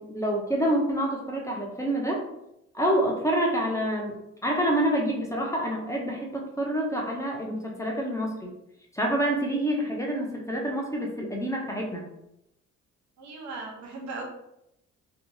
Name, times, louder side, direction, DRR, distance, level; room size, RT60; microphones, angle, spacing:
voice 1, 0.0-2.2 2.7-4.2 4.4-8.5 8.9-12.0, right 1 dB, 10° left, -1 dB, 0.5 m, -27 dB
voice 2, 13.2-14.2, right 3 dB, 65° right, 1 dB, 0.8 m, -38 dB
2.8 x 2.3 x 2.6 m, 0.83 s
cardioid pair, 90°, 30 cm